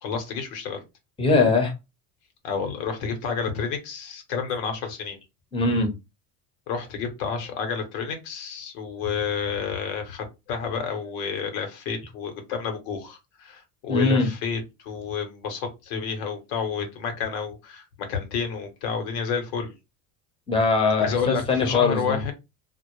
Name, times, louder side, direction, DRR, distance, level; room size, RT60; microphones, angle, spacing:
voice 1, 0.0-0.8 2.4-5.2 6.7-19.7 21.0-22.3, left 6 dB, 70° left, 1.0 m, -30 dB
voice 2, 1.2-1.7 5.5-5.9 13.9-14.3 20.5-22.2, left 3 dB, 10° left, 0.8 m, -21 dB
2.1 x 2.0 x 3.0 m
hypercardioid pair, 90°, 47 cm